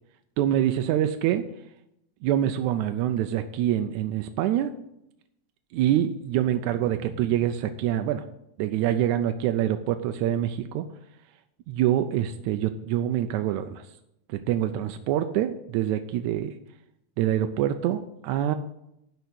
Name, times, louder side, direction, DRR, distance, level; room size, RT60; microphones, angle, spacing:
voice 1, 0.4-1.4 2.2-4.7 5.7-8.2 8.6-10.9 11.7-13.9 14.3-16.5 17.2-18.6, right 11 dB, 80° right, 7 dB, 2.0 m, -25 dB
11.5 x 5.1 x 8.1 m, 0.81 s
omnidirectional pair, 3.4 m